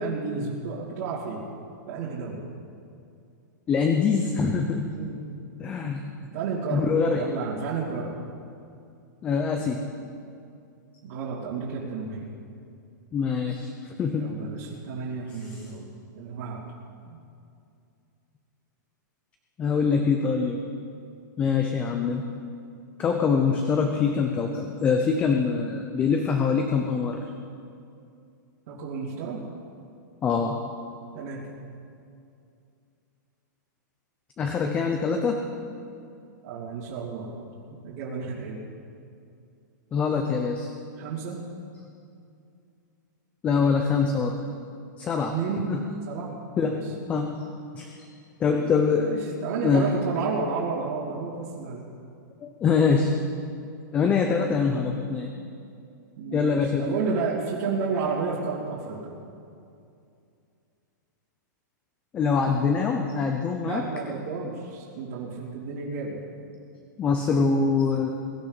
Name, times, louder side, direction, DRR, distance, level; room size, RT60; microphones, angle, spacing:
voice 1, 0.0-1.5 1.9-2.4 4.9-5.3 6.3-8.2 11.0-12.3 14.1-15.9 16.2-16.6 17.1-17.2 28.7-29.4 31.1-31.5 36.4-37.3 37.7-38.6 41.0-41.4 45.3-45.7 46.0-46.9 49.0-51.9 54.4-54.7 56.2-59.2 63.5-66.2, right 5 dB, 50° right, -8 dB, 2.8 m, -32 dB
voice 2, 3.7-4.9 5.6-6.0 6.7-7.2 9.2-9.8 13.1-14.4 15.5-15.7 19.6-20.6 21.4-22.2 23.0-27.2 30.2-30.6 34.4-35.4 39.9-40.7 43.4-44.4 45.0-45.3 45.7-45.8 46.6-46.8 47.1-47.4 47.7-47.9 48.4-49.2 49.6-50.2 52.4-53.1 53.9-55.3 56.3-57.0 62.1-63.8 67.0-68.1, left 5 dB, 10° left, 4 dB, 0.6 m, -24 dB
22.5 x 12.0 x 4.1 m, 2.5 s
supercardioid pair, 170°, 11 cm